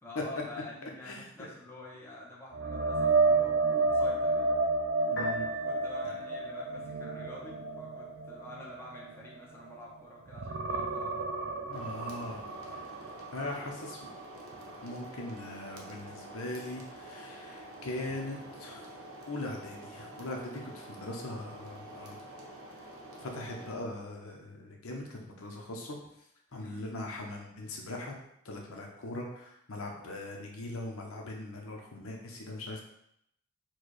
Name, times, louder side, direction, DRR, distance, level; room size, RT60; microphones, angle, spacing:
voice 1, 0.0-4.5 5.5-11.1 13.4-13.7 26.5-26.9, left 1 dB, 10° left, -4 dB, 0.7 m, -48 dB
sound 1, 2.5-9.9 10.3-14.1 14.5-14.7 18.1-18.2, right 3 dB, 65° right, 0.5 m, -31 dB
Piano, 5.0-18.0, right 1 dB, 50° left, 1.0 m, -51 dB
voice 2, 5.1-5.5 11.6-12.4 13.3-14.0 14.8-18.8 19.3-22.2 23.2-26.0 26.5-28.1 28.4-32.8, left 2 dB, 85° left, 0 dB, 0.9 m, -40 dB
sound 2, 11.7-23.7, right 1 dB, 85° right, 0.9 m, -48 dB
4.5 x 2.3 x 4.7 m, 0.75 s
head